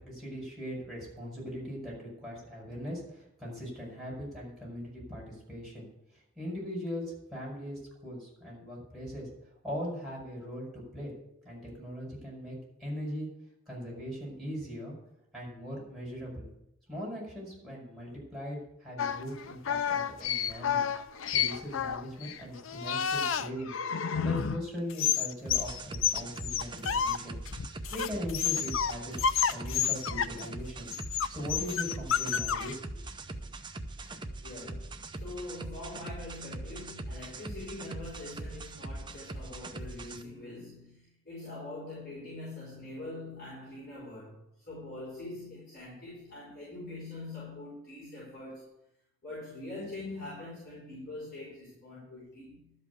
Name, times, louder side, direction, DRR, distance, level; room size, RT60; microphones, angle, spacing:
voice 1, 0.0-9.3 9.6-11.1 11.4-13.3 13.7-15.0 15.3-16.5 16.9-20.8 21.3-23.8 24.2-27.4 27.9-29.2 29.5-30.9 31.3-33.0, equal, ahead, -5 dB, 5.4 m, -40 dB
sound 1, 19.0-24.6 24.9-27.2 27.5-28.9 29.2-30.5 30.9-32.7, left 7 dB, 70° left, 0.5 m, -30 dB
sound 2, 25.5-40.2, right 2 dB, 25° right, 0.7 m, -42 dB
voice 2, 34.4-48.7 49.2-52.7, left 2 dB, 50° left, -7 dB, 4.9 m, -43 dB
12.0 x 5.6 x 8.2 m, 0.81 s
head